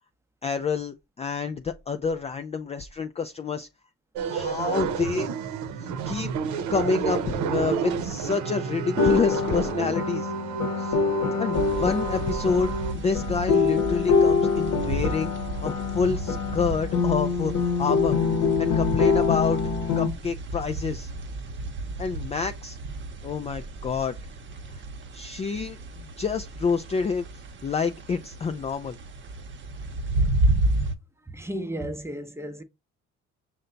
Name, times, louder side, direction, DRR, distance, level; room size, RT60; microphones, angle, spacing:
voice 1, 0.4-3.7 4.3-5.3 6.1-6.3 6.7-10.3 10.8-11.0 11.4-15.3 15.6-18.2 18.6-19.6 20.0-21.1 22.0-22.8 23.2-24.2 24.7-24.8 25.1-27.3 27.6-29.0, left 5 dB, 20° left, 0.3 m, -28 dB
sound 1, 4.2-12.9, right 6 dB, 75° right, 0.7 m, -30 dB
sound 2, 9.0-20.1, left 5 dB, 55° left, 0.8 m, -25 dB
sound 3, 11.5-30.9, right 2 dB, 40° right, 0.8 m, -32 dB
voice 2, 31.3-32.6, right 1 dB, 10° right, 0.7 m, -34 dB
5.5 x 2.2 x 3.9 m
supercardioid pair, 80°, 30 cm